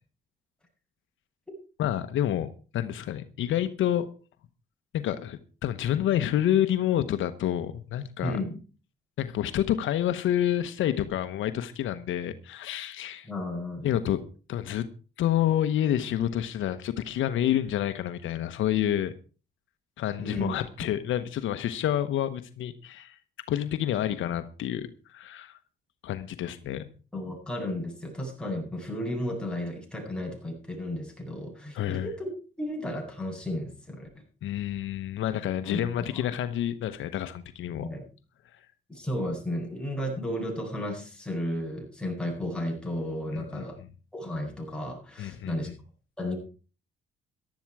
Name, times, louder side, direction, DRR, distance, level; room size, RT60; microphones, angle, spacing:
voice 1, 1.8-4.1 4.9-8.4 9.2-13.3 13.8-14.2 14.5-14.8 15.2-19.1 20.0-23.2 23.5-25.5 26.0-26.8 31.7-32.1 34.4-37.9 43.3-43.7 45.2-45.7, left 11 dB, 80° left, 11 dB, 1.1 m, -28 dB
voice 2, 8.2-8.6 13.3-13.9 20.2-20.6 27.1-32.3 32.6-34.1 35.6-35.8 36.1-36.3 37.8-38.0 38.9-43.8 44.1-45.7 46.2-46.4, left 1 dB, 5° left, 0 dB, 7.8 m, -33 dB
15.0 x 12.0 x 4.8 m, 0.37 s
cardioid pair, 90°, 20 cm